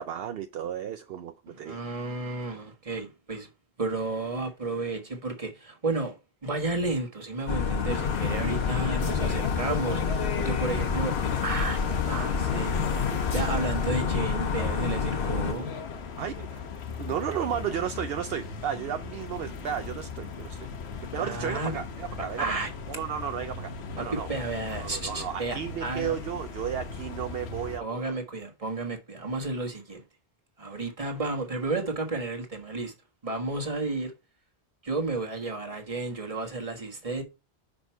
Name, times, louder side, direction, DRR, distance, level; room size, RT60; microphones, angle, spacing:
voice 1, 0.0-1.8 16.2-16.6 17.0-20.7 21.1-22.5 22.9-23.7 24.0-24.3 24.8-28.2, right 9 dB, 70° right, 0.8 m, -33 dB
voice 2, 1.5-3.5 3.8-6.1 6.4-11.1 11.4-12.8 13.3-15.7 21.2-21.8 22.4-22.7 24.0-26.1 27.8-30.0 30.6-32.9 33.2-34.1 34.8-37.2, right 3 dB, 35° right, 1.5 m, -32 dB
sound 1, 7.5-15.5, left 6 dB, 65° left, 1.0 m, -28 dB
sound 2, 7.9-27.8, left 6 dB, 85° left, 1.1 m, -37 dB
6.1 x 5.1 x 4.5 m
omnidirectional pair, 1.1 m